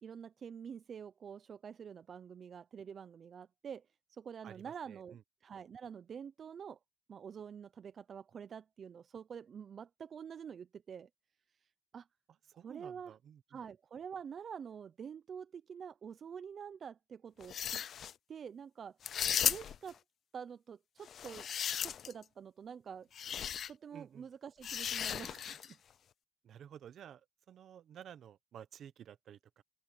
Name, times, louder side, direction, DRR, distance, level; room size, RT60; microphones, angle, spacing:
voice 1, 0.0-3.8 4.1-6.8 7.1-11.1 11.9-12.1 12.5-13.2 13.5-17.8 18.3-19.0 19.4-20.0 20.3-21.5 21.7-23.1 23.7-25.8, right 7 dB, 65° right, 0.6 m, -47 dB
voice 2, 4.4-5.2 12.6-13.4 23.9-24.2 26.4-27.2 27.5-29.6, right 9 dB, 80° right, 1.0 m, -53 dB
sound 1, 17.4-18.1 19.0-19.9 21.1-22.2 23.1-23.7 24.6-25.7, left 9 dB, 75° left, 0.4 m, -36 dB
open air
cardioid pair, 65°, 0 cm